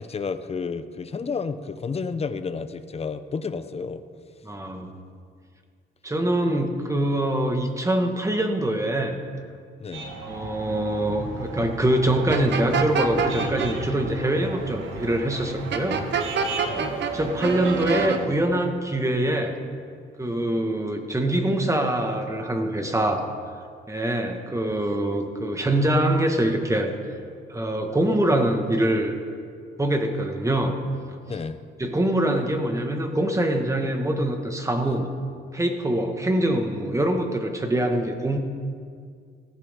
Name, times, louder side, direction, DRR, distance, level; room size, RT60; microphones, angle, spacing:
voice 1, 0.0-4.0 9.8-10.1 16.7-17.0 31.2-31.6, left 5 dB, 30° left, 11 dB, 0.8 m, -31 dB
voice 2, 4.4-4.9 6.0-9.2 10.2-16.1 17.1-19.6 20.2-23.3 23.9-26.9 27.5-29.1 29.8-30.8 31.8-35.1 35.5-38.4, right 1 dB, 15° right, 4 dB, 1.6 m, -24 dB
sound 1, 9.9-18.3, right 3 dB, 80° right, 1.9 m, -35 dB
sound 2, 12.3-13.7 15.7-17.1 17.4-18.2, right 6 dB, 65° right, 1.1 m, -26 dB
17.0 x 14.5 x 3.7 m, 2.2 s
cardioid pair, 90°, 20 cm